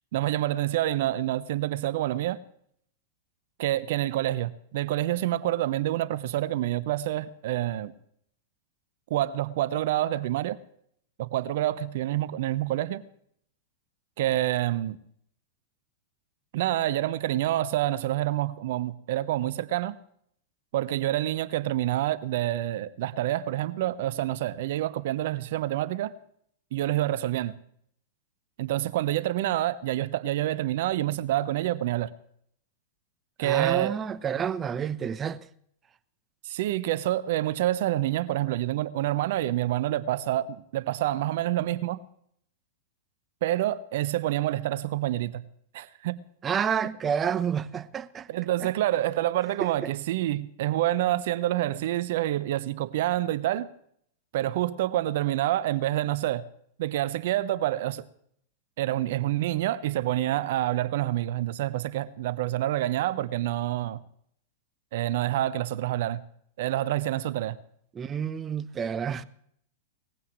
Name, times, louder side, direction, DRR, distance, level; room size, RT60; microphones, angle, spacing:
voice 1, 0.1-2.4 3.6-7.9 9.1-10.6 11.2-13.0 14.2-15.0 16.5-20.0 20.7-26.1 26.7-27.6 28.6-32.1 33.4-34.0 36.4-42.0 43.4-45.4 45.7-46.2 48.3-53.7 54.3-56.4 56.8-58.1 58.8-64.0 64.9-66.2 66.6-67.6, right 14 dB, 65° right, 0.9 m, -27 dB
voice 2, 33.4-35.5 46.4-48.3 48.6-48.7 49.6-49.9 67.9-69.2, right 7 dB, 25° right, 0.8 m, -29 dB
20.0 x 15.5 x 3.1 m
hypercardioid pair, 105°, 0 cm